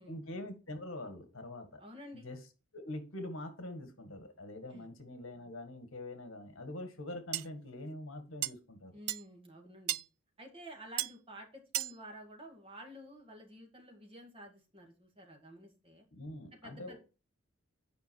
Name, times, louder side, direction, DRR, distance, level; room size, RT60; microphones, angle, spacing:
voice 1, 0.1-1.8 2.1-2.4 2.7-8.9 16.1-17.0, left 1 dB, 70° left, 8 dB, 1.7 m, -44 dB
voice 2, 1.8-2.3 4.7-4.9 8.9-10.0 10.4-16.1 16.6-17.0, right 1 dB, 25° right, 2 dB, 2.0 m, -51 dB
sound 1, 7.3-7.5 8.4-8.5 9.1-9.2 9.9-10.0 11.0-11.1 11.7-11.9, right 16 dB, 85° right, 0.4 m, -33 dB
9.3 x 5.2 x 4.5 m, 0.33 s
head